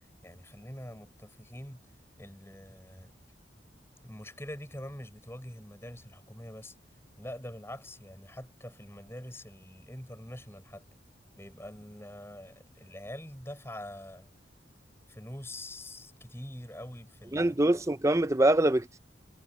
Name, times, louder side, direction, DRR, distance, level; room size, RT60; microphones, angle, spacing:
voice 1, 0.2-1.9 2.2-3.1 4.0-6.7 7.2-10.9 11.4-14.3 15.1-17.6, left 1 dB, 15° left, 6.8 m, -44 dB
voice 2, 17.3-19.0, right 1 dB, 15° right, 0.6 m, -24 dB
head